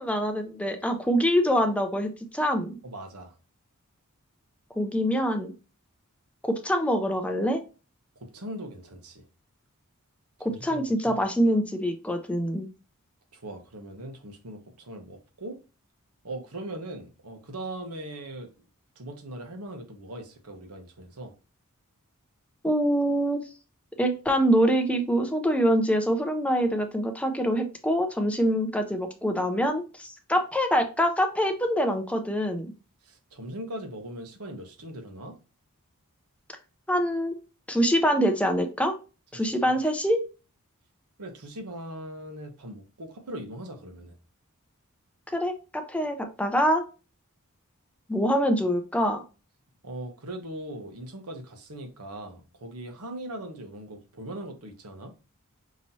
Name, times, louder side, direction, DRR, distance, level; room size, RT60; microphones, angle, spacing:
voice 1, 0.0-2.8 4.8-5.5 6.4-7.6 10.4-12.7 22.6-23.4 24.0-32.7 36.9-37.3 37.7-38.9 39.3-40.2 45.3-46.8 48.1-49.2, equal, 5° left, 0.5 m, -25 dB
voice 2, 2.8-3.4 8.2-9.2 10.4-11.2 13.3-15.6 16.2-18.5 19.0-21.3 33.0-35.4 39.3-39.7 41.2-44.1 49.8-55.1, right 1 dB, 85° right, 1.1 m, -40 dB
5.6 x 3.1 x 2.8 m
head